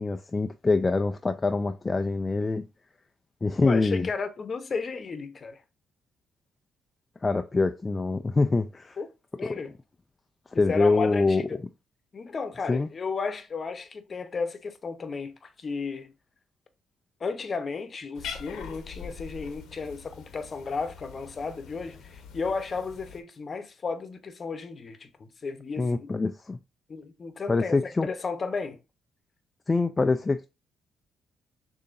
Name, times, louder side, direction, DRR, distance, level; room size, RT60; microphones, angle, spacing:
voice 1, 0.0-2.7 3.4-4.1 7.2-9.0 10.6-11.4 12.7-12.9 25.8-26.6 27.5-28.1 29.7-30.5, left 3 dB, 25° left, 0.3 m, -25 dB
voice 2, 3.6-5.6 9.0-9.1 9.4-9.7 10.5-11.6 12.1-16.1 17.2-26.1 26.9-28.8, left 4 dB, 40° left, 0.8 m, -33 dB
Cat, 18.1-23.2, left 6 dB, 85° left, 0.9 m, -43 dB
6.6 x 2.8 x 2.5 m
cardioid pair, 90°, 0 cm